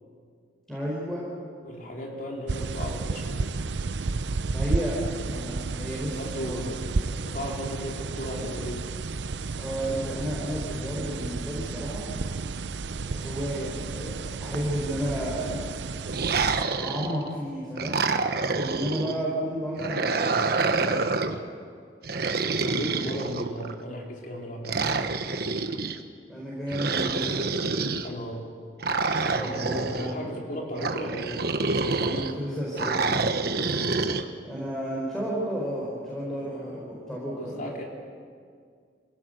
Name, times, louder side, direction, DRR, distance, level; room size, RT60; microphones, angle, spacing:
voice 1, 0.7-1.3 4.5-5.0 5.2-6.7 9.6-12.0 13.1-15.6 16.4-18.0 18.4-20.9 26.3-27.5 29.4-30.2 32.0-33.3 34.4-37.7, equal, 5° left, -6 dB, 4.8 m, -32 dB
voice 2, 1.6-3.5 6.2-8.9 22.6-25.0 28.0-28.5 29.3-31.5 37.3-37.8, equal, 50° left, -1 dB, 4.3 m, -36 dB
sound 1, 2.5-16.6, right 4 dB, 85° right, 0.6 m, -32 dB
sound 2, 16.1-17.3 17.8-19.2 19.8-21.4 22.0-23.7 24.6-26.0 26.7-28.1 28.8-30.1 30.8-32.3 32.8-34.2, right 4 dB, 60° right, 1.2 m, -27 dB
26.5 x 17.0 x 8.1 m, 2.1 s
head